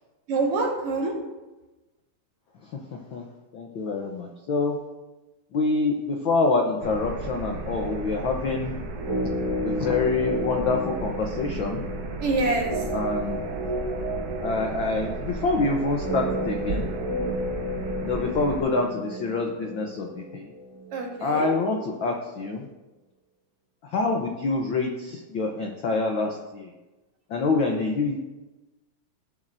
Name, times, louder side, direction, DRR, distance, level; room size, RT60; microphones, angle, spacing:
voice 1, 0.3-1.1 12.2-12.9 20.9-21.5, right 3 dB, 55° right, 0 dB, 2.2 m, -26 dB
voice 2, 3.5-4.8 5.5-8.8 9.6-11.8 12.9-13.5 14.4-16.9 18.0-20.5 21.2-22.7 23.8-26.7 27.3-28.2, left 3 dB, 75° left, 2 dB, 1.1 m, -26 dB
sound 1, 6.8-18.6, right 3 dB, 80° right, 2.6 m, -35 dB
sound 2, 8.9-21.1 21.3-21.4, equal, 15° right, 1.8 m, -32 dB
18.0 x 7.3 x 2.6 m, 1.1 s
omnidirectional pair, 3.4 m